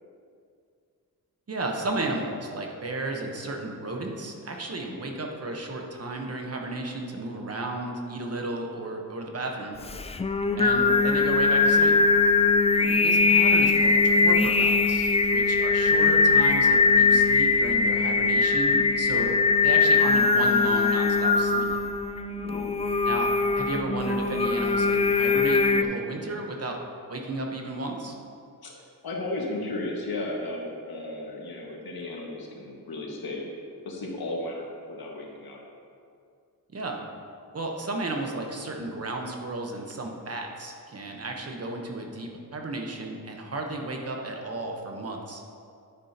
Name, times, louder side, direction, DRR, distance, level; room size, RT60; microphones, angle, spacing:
voice 1, 1.5-9.8 10.6-12.0 13.0-19.3 19.6-21.8 23.1-26.8 27.1-28.1 36.7-37.0 37.5-45.4, right 2 dB, 45° right, 2 dB, 1.1 m, -33 dB
Singing, 9.9-25.8, left 4 dB, 20° left, 0.3 m, -21 dB
voice 2, 10.5-10.9 12.8-12.9 15.7-15.8 19.1-19.3 22.4-22.7 28.6-28.7 29.0-33.5 33.9-35.6, left 2 dB, 90° left, -2 dB, 1.8 m, -35 dB
9.9 x 9.8 x 2.9 m, 2.3 s
wide cardioid pair, 130°, 36 cm